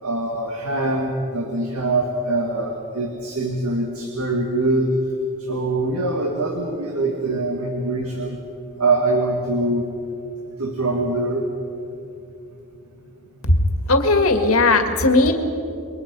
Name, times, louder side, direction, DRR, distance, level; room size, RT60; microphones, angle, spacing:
voice 1, 0.0-4.9 5.4-8.4 8.8-9.9 10.6-11.5, right 2 dB, 80° right, 2 dB, 2.1 m, -23 dB
voice 2, 13.9-15.3, left 3 dB, 70° left, 6 dB, 2.0 m, -17 dB
28.5 x 23.0 x 5.5 m, 2.8 s
head